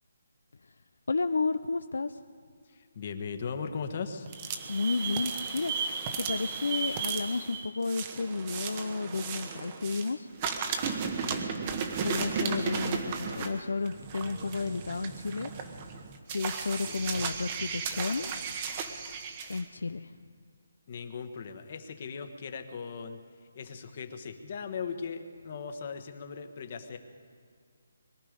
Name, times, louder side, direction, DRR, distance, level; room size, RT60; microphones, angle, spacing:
voice 1, 1.1-2.2 4.7-5.7 6.2-10.3 12.0-15.5 16.3-18.3 19.5-20.2, left 3 dB, 80° left, 10 dB, 0.5 m, -32 dB
voice 2, 2.7-4.3 11.0-11.4 16.8-17.3 20.9-23.2 23.5-27.0, left 5 dB, 45° left, 7 dB, 1.3 m, -39 dB
sound 1, 4.3-10.1 10.4-19.6, right 6 dB, 30° right, 1.1 m, -35 dB
22.0 x 12.0 x 5.2 m, 2.1 s
hypercardioid pair, 160°, 0 cm